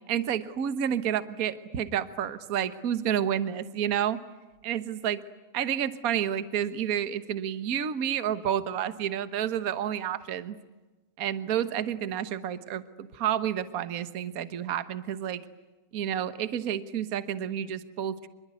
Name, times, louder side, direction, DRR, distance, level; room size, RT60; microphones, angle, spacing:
voice 1, 0.1-4.2 4.6-5.2 5.5-10.5 11.2-15.4 15.9-18.3, right 9 dB, 80° right, 12 dB, 0.7 m, -30 dB
26.5 x 22.5 x 9.6 m, 1.2 s
omnidirectional pair, 3.5 m